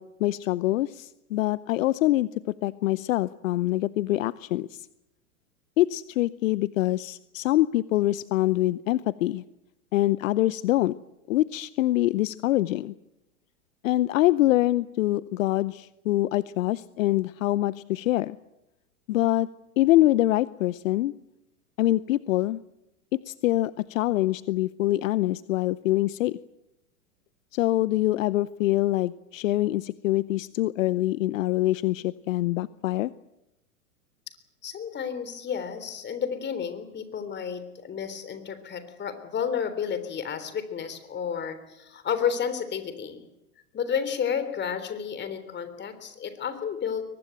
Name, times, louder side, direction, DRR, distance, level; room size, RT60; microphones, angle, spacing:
voice 1, 0.0-4.9 5.8-9.4 9.9-10.9 11.3-12.9 13.8-18.4 19.1-19.5 19.8-21.1 21.8-22.6 23.1-26.4 27.5-33.1, left 16 dB, 65° left, 18 dB, 0.8 m, -25 dB
voice 2, 34.6-43.2 43.7-47.0, left 7 dB, 25° left, 11 dB, 3.5 m, -31 dB
23.0 x 19.5 x 9.1 m, 0.92 s
hypercardioid pair, 105°, 44 cm